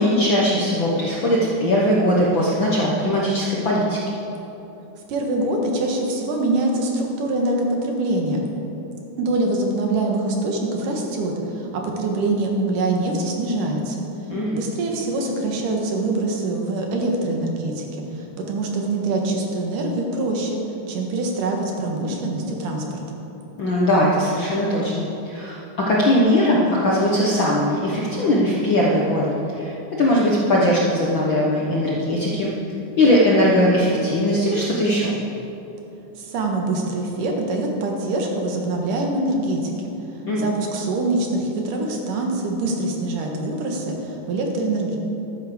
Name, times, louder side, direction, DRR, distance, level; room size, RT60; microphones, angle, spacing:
voice 1, 0.0-4.0 14.3-14.6 23.6-32.5 33.0-35.1 40.3-40.5, left 1 dB, 60° left, -4 dB, 1.3 m, -20 dB
voice 2, 5.1-8.4 9.2-14.0 14.5-20.6 20.9-23.0 36.2-39.9 40.4-45.0, right 2 dB, 75° right, 1 dB, 3.0 m, -24 dB
12.5 x 9.6 x 6.8 m, 3.0 s
omnidirectional pair, 3.9 m